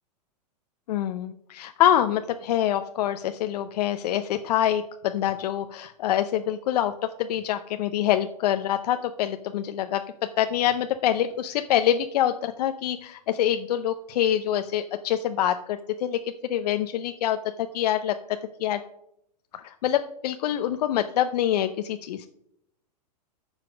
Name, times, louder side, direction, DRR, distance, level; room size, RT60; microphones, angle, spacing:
voice 1, 0.9-18.2 18.6-18.8 19.5-22.3, left 11 dB, 70° left, 8 dB, 0.6 m, -25 dB
9.7 x 5.8 x 5.0 m, 0.76 s
hypercardioid pair, 125°, 21 cm